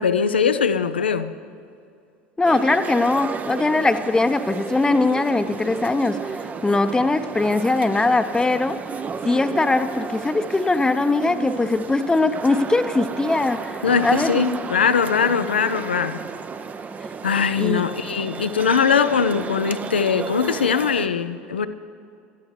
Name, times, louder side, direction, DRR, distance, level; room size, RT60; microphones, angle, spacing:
voice 1, 0.0-1.3 13.8-16.2 17.2-21.7, left 6 dB, 90° left, 11 dB, 0.5 m, -21 dB
voice 2, 2.4-8.8 9.2-14.6 17.6-17.9, left 3 dB, 15° left, 10 dB, 0.7 m, -21 dB
sound 1, 2.4-21.1, right 5 dB, 30° right, 0.6 m, -33 dB
20.5 x 13.0 x 3.2 m, 2.5 s
hypercardioid pair, 75°, 6 cm